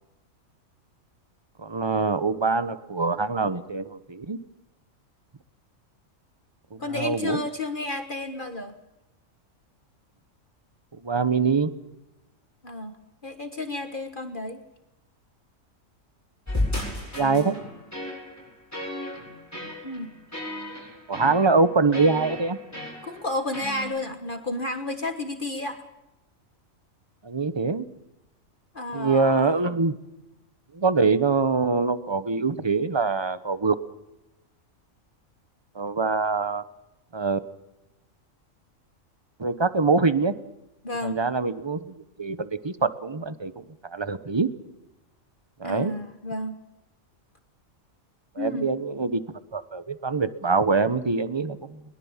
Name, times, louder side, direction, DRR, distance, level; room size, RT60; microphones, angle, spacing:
voice 1, 1.6-4.4 6.7-7.4 11.0-11.7 17.2-17.5 21.1-22.6 27.2-27.9 28.9-30.0 30.7-33.7 35.7-36.6 37.1-37.4 39.4-40.3 41.0-41.9 42.2-44.5 45.6-45.9 48.4-49.2 49.5-51.8, right 4 dB, 20° right, 12 dB, 1.0 m, -24 dB
voice 2, 6.8-8.7 12.6-13.0 13.2-14.6 19.8-20.1 23.0-25.8 28.7-29.5 40.8-41.2 45.6-46.6 48.4-48.7, left 2 dB, 40° left, 7 dB, 1.6 m, -31 dB
sound 1, 16.5-23.8, left 1 dB, 10° left, 7.6 m, -34 dB
22.0 x 21.5 x 7.4 m, 0.96 s
omnidirectional pair, 1.4 m